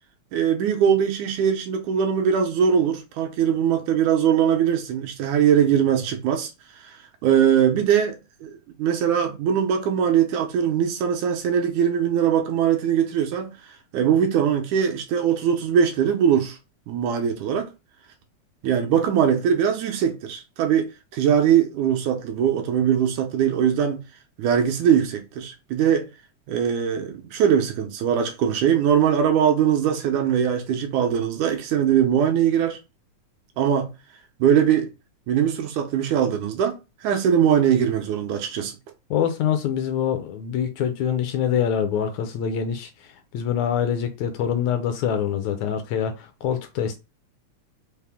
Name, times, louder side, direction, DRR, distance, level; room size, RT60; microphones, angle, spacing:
voice 1, 0.3-6.5 7.2-13.6 13.9-16.6 16.9-17.7 18.6-24.0 24.4-26.0 26.5-32.8 33.6-33.9 34.4-34.9 35.3-36.8 37.0-38.8, right 8 dB, 80° right, 2.2 m, -21 dB
voice 2, 39.1-42.9 43.3-47.0, left 8 dB, 80° left, 1.8 m, -25 dB
5.7 x 2.1 x 3.5 m
omnidirectional pair, 3.5 m